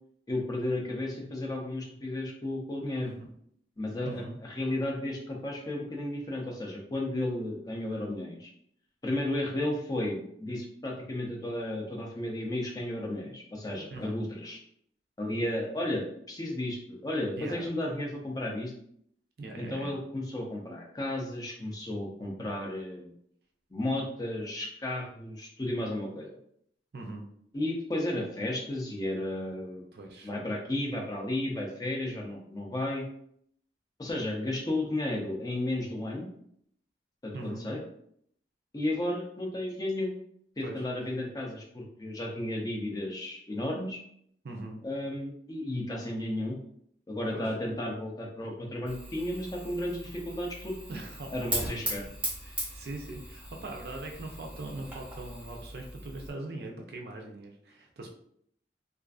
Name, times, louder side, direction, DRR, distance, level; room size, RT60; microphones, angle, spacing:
voice 1, 0.3-3.1 3.8-8.5 9.0-14.6 15.2-18.7 19.5-23.1 23.7-26.4 27.5-29.8 30.2-33.1 34.0-36.3 37.2-37.8 38.7-40.2 40.6-44.0 44.8-46.6 47.1-50.8 51.3-52.0, left 1 dB, 20° left, -1 dB, 0.4 m, -33 dB
voice 2, 3.0-3.3 4.0-4.4 13.9-14.2 17.4-17.7 19.4-20.0 26.9-27.3 29.9-30.3 37.3-37.7 40.6-40.8 44.4-44.8 47.3-47.5 50.9-51.8 52.4-58.1, right 2 dB, 60° right, 2 dB, 0.4 m, -41 dB
Fire, 48.9-56.3, right 1 dB, 10° right, 0.7 m, -39 dB
2.4 x 2.4 x 2.3 m, 0.67 s
head